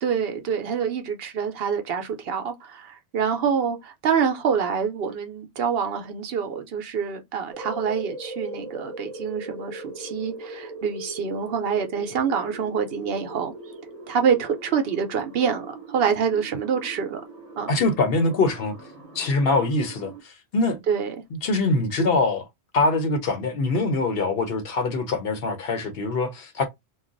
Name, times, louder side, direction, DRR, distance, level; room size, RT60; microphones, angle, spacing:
voice 1, 0.0-13.5 14.1-17.2 17.6-17.8 20.9-21.2, right 7 dB, 70° right, 0.8 m, -26 dB
sound 1, 7.5-20.2, right 2 dB, 35° right, 0.8 m, -40 dB
voice 2, 17.7-18.7 19.1-20.8 21.3-22.5 22.7-26.6, left 3 dB, 65° left, 0.9 m, -23 dB
2.4 x 2.3 x 3.7 m
omnidirectional pair, 1.1 m